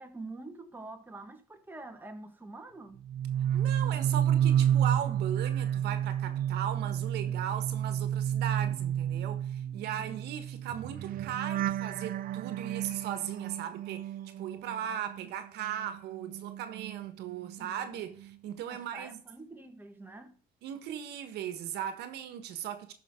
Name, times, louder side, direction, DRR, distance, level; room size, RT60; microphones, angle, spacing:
voice 1, 0.0-3.1 9.9-10.2 17.6-18.0 18.7-20.4, right 2 dB, 10° right, 1.5 m, -46 dB
sound 1, 3.0-15.3 15.6-17.7 18.0-18.4, right 10 dB, 60° right, 0.6 m, -31 dB
voice 2, 3.5-19.2 20.6-22.9, right 10 dB, 80° right, 1.4 m, -38 dB
14.0 x 5.7 x 3.7 m
cardioid pair, 110°, 17 cm